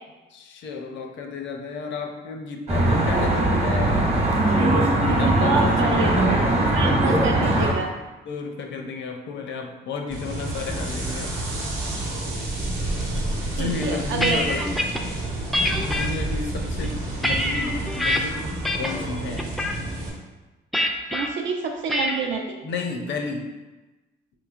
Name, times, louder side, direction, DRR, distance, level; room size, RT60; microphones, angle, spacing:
voice 1, 0.3-4.3 5.2-7.3 8.3-11.3 13.6-14.9 15.8-18.5 18.7-19.5 22.6-23.5, left 4 dB, 65° left, 3 dB, 0.5 m, -32 dB
Traffic noise roadway noise, 2.7-7.7, right 1 dB, 35° right, 0.9 m, -20 dB
voice 2, 5.1-6.2 6.7-7.9 13.5-14.6 21.1-22.6, right 5 dB, 70° right, 2 dB, 0.6 m, -28 dB
sound 1, 10.1-20.1, right 2 dB, 90° right, 0.9 m, -30 dB
sound 2, 13.8-15.0 15.5-16.1 16.7-18.2 18.6-19.0 19.4-19.8 20.7-21.3 21.9-22.3, left 1 dB, ahead, 0.3 m, -25 dB
3.7 x 3.0 x 2.4 m, 1.1 s
cardioid pair, 90°, 20 cm